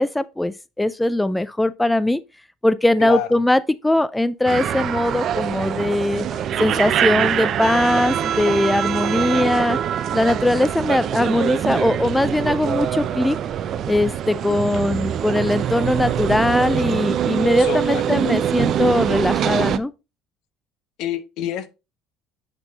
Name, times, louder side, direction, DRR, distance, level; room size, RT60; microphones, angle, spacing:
voice 1, 0.0-2.2 2.6-6.2 6.6-9.8 10.1-13.4 13.9-19.9, left 1 dB, 10° left, 0.3 m, -20 dB
voice 2, 3.0-3.4 17.6-18.0 21.0-21.7, left 11 dB, 70° left, 0.9 m, -27 dB
sound 1, 4.5-19.8, right 9 dB, 50° right, 0.6 m, -23 dB
sound 2, 4.7-4.9 5.3-5.6 6.0-6.5 6.8-6.9 7.3-7.9 8.3-8.6 9.3-9.5 10.2-10.4 11.0-11.2 11.8-11.9 12.5-12.7 13.2-13.5 13.9-14.2 14.7-14.9 15.4-15.6 16.1-16.3 16.7-17.0, left 3 dB, 25° left, 3.0 m, -44 dB
8.1 x 3.5 x 4.0 m
supercardioid pair, 95°, 0 cm